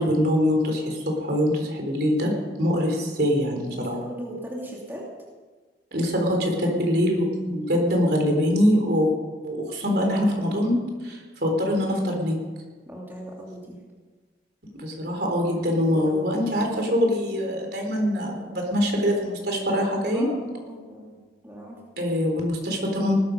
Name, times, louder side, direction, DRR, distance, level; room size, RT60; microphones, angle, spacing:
voice 1, 0.0-3.9 5.9-9.1 9.4-10.7 11.0-12.4 14.8-20.3 22.0-23.2, equal, 55° right, 1 dB, 3.8 m, -23 dB
voice 2, 3.7-5.1 12.9-13.8 15.5-16.4 20.1-21.2 21.4-21.8, equal, 10° right, -3 dB, 2.6 m, -38 dB
19.0 x 13.5 x 5.3 m, 1.3 s
head